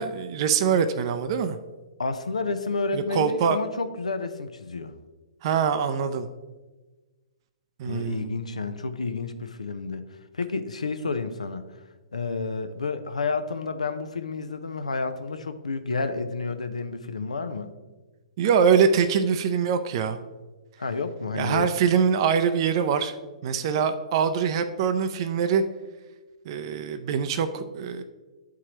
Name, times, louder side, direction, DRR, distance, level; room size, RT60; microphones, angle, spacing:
voice 1, 0.0-1.6 2.9-3.6 5.4-6.3 7.8-8.3 18.4-20.2 21.3-23.2 23.4-25.6 26.5-28.0, right 7 dB, 45° right, 9 dB, 0.5 m, -23 dB
voice 2, 2.0-4.9 7.9-10.0 10.3-11.6 12.1-17.7 20.8-21.7, left 4 dB, 85° left, 10 dB, 0.7 m, -30 dB
11.5 x 4.7 x 2.9 m, 1.2 s
hypercardioid pair, 125°, 3 cm